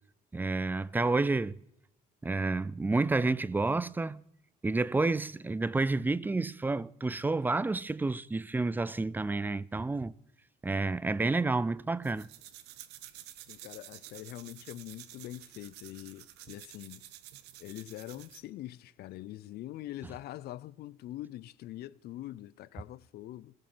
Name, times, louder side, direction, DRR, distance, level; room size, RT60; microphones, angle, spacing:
voice 1, 0.3-1.6 2.2-4.2 4.6-10.1 10.6-12.3, right 3 dB, 10° right, 0.4 m, -30 dB
sound 1, 12.0-18.5, right 13 dB, 85° right, 0.8 m, -51 dB
voice 2, 13.5-17.0 17.6-23.5, left 14 dB, 70° left, 0.5 m, -44 dB
19.0 x 6.6 x 6.1 m
cardioid pair, 110°, 17 cm